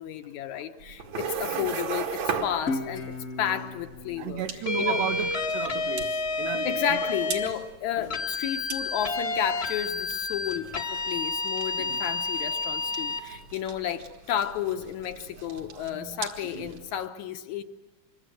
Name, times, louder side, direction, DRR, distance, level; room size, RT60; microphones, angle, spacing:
voice 1, 0.0-4.4 4.8-5.0 6.5-17.6, left 10 dB, 70° left, 2.2 m, -32 dB
sound 1, 0.8-17.1, right 6 dB, 60° right, 3.1 m, -39 dB
Guitar, 2.7-5.9, left 3 dB, 50° left, 1.0 m, -37 dB
voice 2, 4.2-7.1 11.8-12.0 15.5-15.9 16.5-16.7, right 10 dB, 85° right, 2.7 m, -34 dB
sound 2, 4.7-7.5 8.1-13.2, left 3 dB, 30° left, 1.2 m, -30 dB
26.0 x 23.0 x 7.6 m
omnidirectional pair, 3.7 m